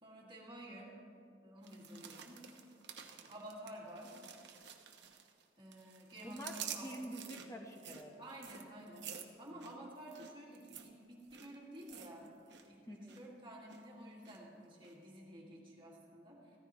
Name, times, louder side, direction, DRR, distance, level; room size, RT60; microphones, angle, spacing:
voice 1, 0.0-1.0 1.3-2.4 3.2-4.1 5.6-7.0 8.2-9.1 9.4-12.3 12.6-16.6, right 1 dB, 25° right, -3 dB, 2.1 m, -52 dB
sound 1, 1.6-5.4 5.7-12.7 12.9-13.3 13.7-14.4 14.8-14.9, right 8 dB, 60° right, 0.9 m, -50 dB
voice 2, 6.2-8.3 9.5-9.8 12.9-13.2, equal, 15° left, 2 dB, 1.1 m, -48 dB
15.5 x 14.0 x 3.1 m, 2.4 s
head